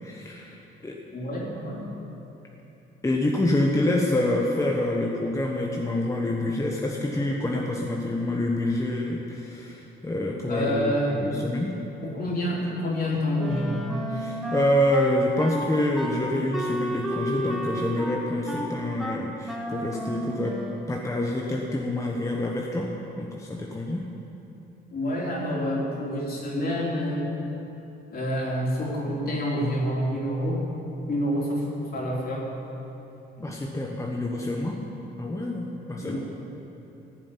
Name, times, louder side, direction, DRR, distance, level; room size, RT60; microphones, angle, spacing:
voice 1, 0.0-1.0 3.0-11.8 14.1-20.6 20.9-22.9 23.2-24.1 33.4-34.8 35.2-36.2, left 1 dB, 15° left, -1 dB, 1.3 m, -27 dB
voice 2, 1.1-2.0 10.5-11.2 12.0-13.9 24.9-27.3 28.1-30.6 31.1-31.6 31.9-32.4 33.4-33.5 36.0-36.2, equal, 50° left, -4 dB, 3.9 m, -28 dB
Wind instrument woodwind instrument, 13.4-21.0, equal, ahead, 1.7 m, -32 dB
15.0 x 7.5 x 8.7 m, 3.0 s
cardioid pair, 90°, 20 cm